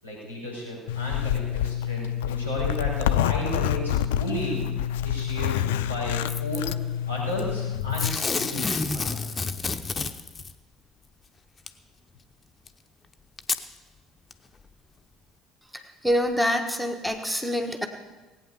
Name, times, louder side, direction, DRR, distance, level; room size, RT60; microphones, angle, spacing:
voice 1, 0.0-4.7 5.0-9.3, left 1 dB, 90° right, -6 dB, 6.3 m, -34 dB
Zipper (clothing), 0.9-8.2, left 10 dB, 65° left, 0.4 m, -27 dB
Packing tape duct tape / Tearing, 6.3-6.7 7.9-10.5 11.7-11.8 12.7-12.8 13.4-13.6 14.3-14.4, left 4 dB, 25° left, 0.8 m, -29 dB
voice 2, 15.7-17.9, equal, 5° right, 6 dB, 1.3 m, -26 dB
18.5 x 9.0 x 7.1 m, 1.2 s
figure-of-eight pair, 60°, 0 cm